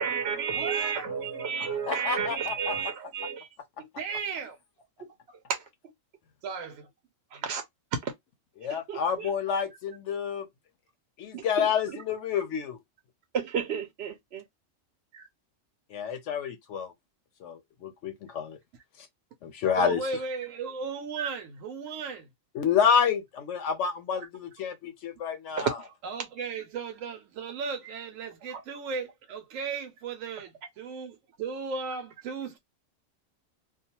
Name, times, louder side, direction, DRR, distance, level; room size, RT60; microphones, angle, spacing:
voice 1, 0.0-3.5 3.8-3.9 5.5-5.7 7.3-7.6 8.0-8.1 8.7-9.3 11.3-12.0 13.3-14.4 15.1-15.3 21.2-21.3 25.6-25.9 28.5-28.6, right 6 dB, 60° right, 0.8 m, -32 dB
voice 2, 0.5-1.1 4.0-4.6 6.4-6.7 19.8-22.3 26.0-32.6, right 5 dB, 85° right, 1.0 m, -36 dB
voice 3, 1.6-2.8 8.6-10.5 11.2-12.8 15.9-16.9 17.4-18.6 19.4-20.0 22.5-25.7, left 7 dB, 70° left, 0.9 m, -29 dB
2.3 x 2.3 x 2.8 m
omnidirectional pair, 1.3 m